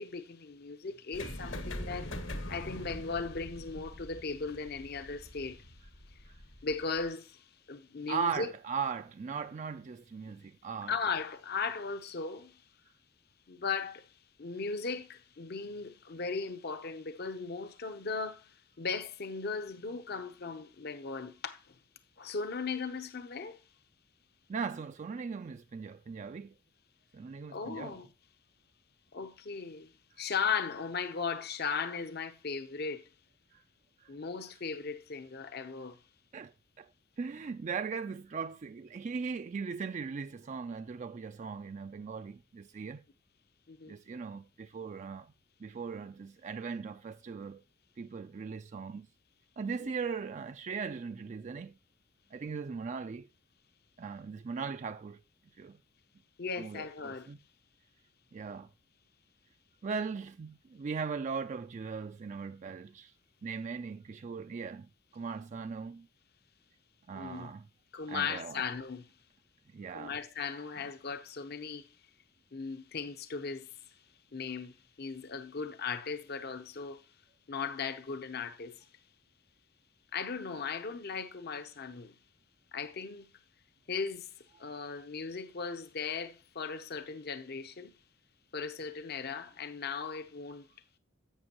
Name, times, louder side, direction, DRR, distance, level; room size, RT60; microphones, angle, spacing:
voice 1, 0.0-5.8 6.1-6.2 6.6-8.5 10.3-10.4 10.9-12.6 13.5-21.8 22.2-23.6 27.5-28.1 29.1-29.9 30.2-33.1 34.1-36.0 43.7-44.0 56.4-57.3 67.1-67.5 67.9-69.1 69.9-72.0 72.5-74.0 74.3-77.1 77.5-78.9 80.1-82.1 82.7-83.3 83.9-87.9 88.5-90.6, left 5 dB, 50° left, 0.8 m, -37 dB
sound 1, 1.1-7.1, left 1 dB, 70° left, 1.5 m, -43 dB
voice 2, 8.1-10.9 24.5-26.5 27.1-28.0 33.5-33.6 34.0-34.1 36.3-36.9 37.2-43.0 43.9-45.3 45.6-47.6 48.0-49.1 49.6-51.7 52.3-53.3 54.0-55.2 55.6-55.8 56.6-57.4 58.3-58.7 59.8-63.1 63.4-64.9 65.1-66.1 67.1-67.7 68.1-68.6 69.7-70.2, right 5 dB, 35° right, 0.3 m, -39 dB
11.0 x 8.1 x 2.9 m
head